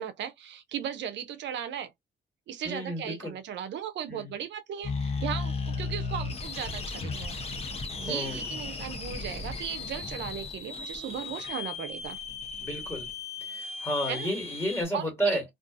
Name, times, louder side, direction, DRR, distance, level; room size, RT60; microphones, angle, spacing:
voice 1, 0.0-1.9 2.5-7.4 8.0-12.2 14.1-14.3 14.9-15.4, right 9 dB, 65° right, 0.5 m, -37 dB
voice 2, 2.6-3.4 4.1-4.3 8.1-8.5 12.6-13.1 13.5-15.4, right 1 dB, 10° left, 1.6 m, -31 dB
sound 1, 4.8-14.8, left 4 dB, 30° left, 0.7 m, -35 dB
2.5 x 2.3 x 2.4 m
cardioid pair, 90°, 20 cm